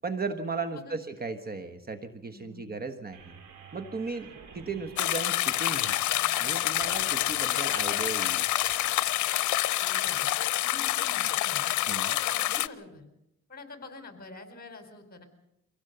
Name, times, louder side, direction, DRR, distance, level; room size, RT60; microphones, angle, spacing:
voice 1, 0.0-3.4 3.7-4.3 4.5-6.0 6.4-8.4 11.9-12.1, right 4 dB, 30° right, 9 dB, 1.4 m, -36 dB
voice 2, 0.6-1.0 2.3-2.9 4.2-4.4 9.8-10.3 10.6-11.7 12.1-13.1 13.5-15.2, left 2 dB, 30° left, 7 dB, 4.5 m, -47 dB
sound 1, 3.1-9.0, right 6 dB, 85° right, 5.5 m, -50 dB
sound 2, 5.0-12.7, left 15 dB, 75° left, 0.7 m, -27 dB
24.0 x 17.0 x 6.9 m, 0.84 s
cardioid pair, 90°, 30 cm